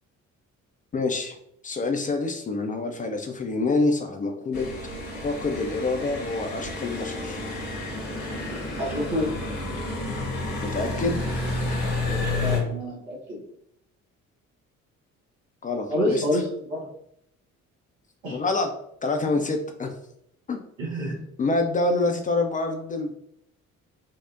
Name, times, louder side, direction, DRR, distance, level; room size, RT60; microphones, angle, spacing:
voice 1, 0.9-1.4 1.6-4.7 5.2-7.4 10.6-11.2 15.6-16.2 18.3-18.7 19.0-19.9 20.5-20.6 21.4-23.1, left 3 dB, 20° left, 4 dB, 0.4 m, -26 dB
sound 1, 4.5-12.6, left 2 dB, 65° left, 1.0 m, -30 dB
voice 2, 8.8-9.3 12.1-13.4 15.9-16.9 18.2-18.4 20.8-21.2, left 1 dB, 85° right, -3 dB, 0.9 m, -28 dB
4.5 x 2.1 x 2.4 m, 0.73 s
figure-of-eight pair, 45°, 39 cm